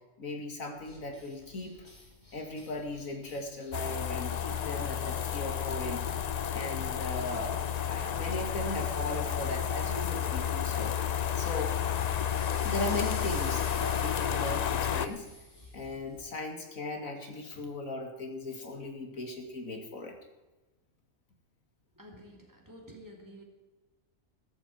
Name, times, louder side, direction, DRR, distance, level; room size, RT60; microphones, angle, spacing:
voice 1, 0.2-1.7 2.3-6.0 6.5-7.6 7.9-11.7 12.6-15.3 15.7-20.1, left 2 dB, 80° left, 3 dB, 2.7 m, -38 dB
sound 1, 0.8-16.3, left 1 dB, 30° left, 3.3 m, -51 dB
sound 2, 3.7-15.1, left 9 dB, 60° left, 0.4 m, -31 dB
voice 2, 22.0-23.4, equal, 15° right, 0 dB, 2.9 m, -50 dB
14.5 x 14.0 x 4.5 m, 1.1 s
omnidirectional pair, 1.4 m